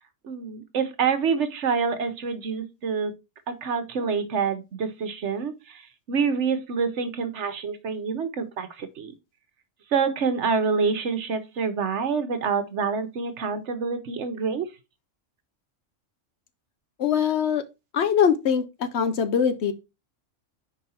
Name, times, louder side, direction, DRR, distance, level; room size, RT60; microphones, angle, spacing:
voice 1, 0.3-3.1 3.5-5.5 6.1-9.1 9.9-14.7, right 5 dB, 65° right, 1.2 m, -27 dB
voice 2, 17.0-17.6 17.9-19.7, left 7 dB, 60° left, 0.9 m, -22 dB
5.1 x 4.7 x 4.3 m
omnidirectional pair, 1.3 m